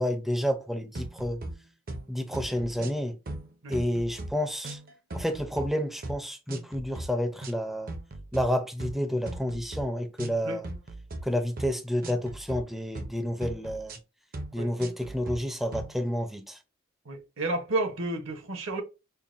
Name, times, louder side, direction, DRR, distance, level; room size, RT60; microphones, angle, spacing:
voice 1, 0.0-1.4 2.1-3.2 3.7-4.8 5.1-7.9 8.3-10.7 11.2-14.0 14.5-16.6, equal, ahead, 0.4 m, -30 dB
sound 1, 0.9-1.5 1.9-2.1 2.3-3.0 3.3-4.3 4.6-5.7 6.0-6.2 6.5-7.1 7.4-7.6 7.9-8.4 8.8-9.0 9.3-9.8 10.2-10.4 10.6-11.2 11.6-11.8 12.0-12.6 12.9-13.1 13.4-14.0 14.3-14.5 14.8-15.4 15.7-15.9, right 2 dB, 45° right, 0.6 m, -38 dB
voice 2, 17.0-18.8, right 2 dB, 65° right, 0.9 m, -31 dB
5.5 x 2.1 x 2.5 m
head